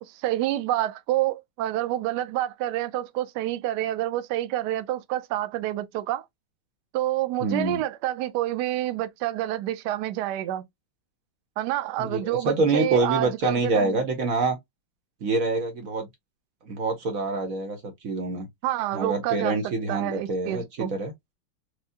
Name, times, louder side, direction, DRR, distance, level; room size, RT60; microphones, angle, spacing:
voice 1, 0.0-6.2 6.9-10.6 11.6-14.0 18.6-19.6 19.9-20.9, right 14 dB, 85° right, 0.9 m, -28 dB
voice 2, 7.4-7.8 12.0-14.6 15.2-16.1 16.7-18.5 18.9-21.1, right 3 dB, 60° right, 0.9 m, -26 dB
4.7 x 2.1 x 2.6 m
omnidirectional pair, 2.4 m